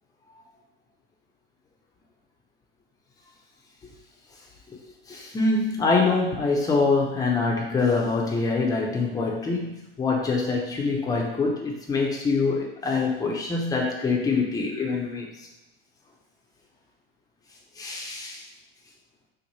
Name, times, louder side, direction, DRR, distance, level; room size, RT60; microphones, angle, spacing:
voice 1, 5.1-15.3 17.8-18.4, left 3 dB, 10° left, -1 dB, 0.6 m, -25 dB
3.1 x 2.1 x 4.1 m, 0.97 s
hypercardioid pair, 115°, 30 cm